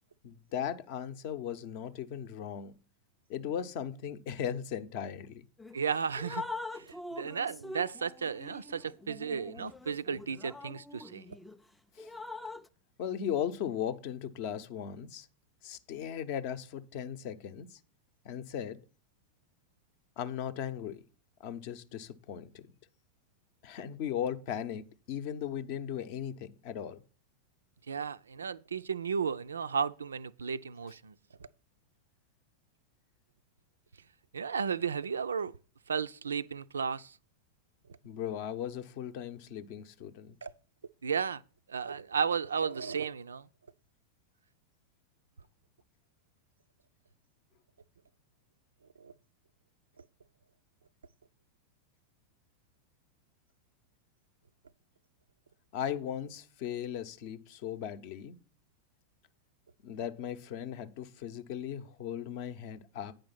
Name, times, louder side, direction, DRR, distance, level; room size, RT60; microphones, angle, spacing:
voice 1, 0.2-2.7 3.3-5.4 12.0-12.1 13.0-15.3 15.6-17.8 18.2-18.8 20.2-21.0 21.4-22.7 23.6-27.0 38.0-40.3 55.7-58.4 59.8-63.1, left 9 dB, 45° left, 0.6 m, -37 dB
Drip, 5.6-5.8 6.2-11.6 12.0-12.7, left 3 dB, 5° left, 0.3 m, -43 dB
voice 2, 5.7-6.5 6.7-11.3 27.9-31.1 34.3-35.5 35.9-37.2 40.4-40.5 41.0-41.4 41.7-43.5 49.0-49.1, right 6 dB, 70° right, 0.3 m, -34 dB
8.9 x 5.2 x 5.7 m
figure-of-eight pair, 90°, 0 cm